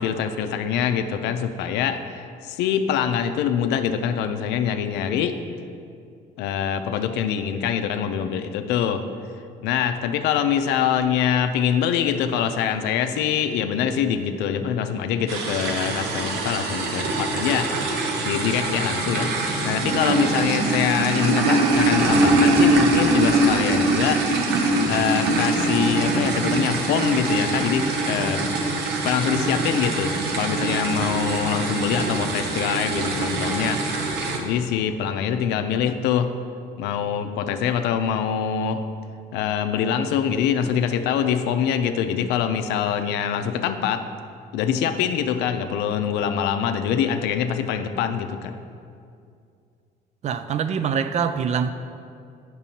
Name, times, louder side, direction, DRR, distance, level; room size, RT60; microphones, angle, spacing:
voice 1, 0.0-5.4 6.4-9.0 9.6-17.7 18.2-19.3 19.6-24.2 24.9-28.4 29.0-36.4 36.8-38.8 39.3-44.0 44.5-48.6, left 8 dB, 85° left, 8 dB, 0.5 m, -24 dB
sound 1, 15.3-34.4, right 2 dB, 80° right, 0.9 m, -23 dB
voice 2, 50.2-51.7, right 7 dB, 40° right, 11 dB, 0.4 m, -24 dB
8.9 x 6.1 x 2.8 m, 2.4 s
cardioid pair, 110°, 17 cm